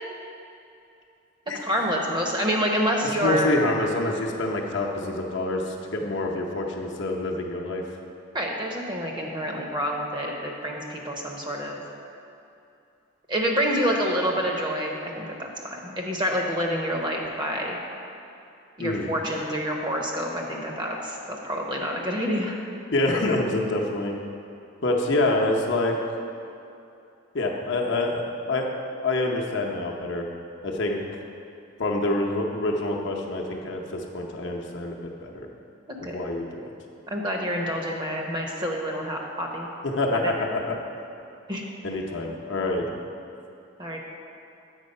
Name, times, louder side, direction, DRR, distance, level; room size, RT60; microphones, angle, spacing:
voice 1, 1.6-3.5 8.3-11.8 13.3-17.8 18.8-22.6 36.0-36.1 37.1-39.7 40.2-40.3 41.5-41.6 43.8-44.0, equal, 20° right, 0 dB, 0.7 m, -27 dB
voice 2, 3.0-7.9 18.8-19.1 22.9-24.2 24.8-26.0 27.3-30.3 30.6-31.0 31.8-35.5 36.0-36.7 39.8-40.8 41.8-42.9, left 2 dB, 60° left, 0 dB, 0.7 m, -26 dB
8.1 x 4.7 x 5.3 m, 2.7 s
head